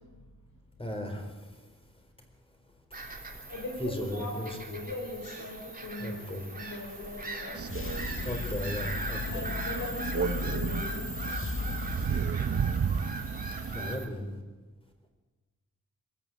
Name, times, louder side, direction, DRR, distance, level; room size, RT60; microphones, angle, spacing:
voice 1, 0.8-1.3 3.8-4.8 6.0-6.5 7.8-7.9 8.2-9.5 11.3-11.4 13.7-14.4, left 1 dB, 15° left, 4 dB, 4.0 m, -36 dB
Bird vocalization bird call bird song / Gull seagull, 2.9-14.0, right 2 dB, 25° right, 3.0 m, -41 dB
voice 2, 3.5-6.2 6.5-7.9 9.3-11.2, left 2 dB, 70° left, 2 dB, 5.0 m, -40 dB
Crow, 7.5-14.0, right 6 dB, 45° right, 0.7 m, -33 dB
sound 1, 7.7-13.1, left 3 dB, 40° left, 1.6 m, -36 dB
26.5 x 14.0 x 9.3 m, 1.3 s
wide cardioid pair, 165°, 33 cm